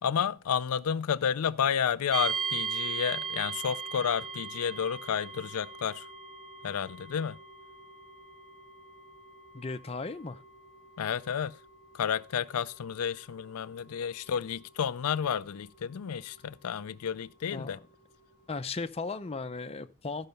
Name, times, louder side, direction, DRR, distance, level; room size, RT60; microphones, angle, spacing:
voice 1, 0.0-6.1 6.6-7.4 11.0-11.6 11.9-17.8, left 8 dB, 80° left, 0.4 m, -31 dB
sound 1, 2.1-16.9, right 6 dB, 5° left, 1.6 m, -40 dB
voice 2, 9.5-10.4 17.5-17.7 18.5-20.3, left 3 dB, 25° left, 0.6 m, -36 dB
13.5 x 5.6 x 5.3 m
head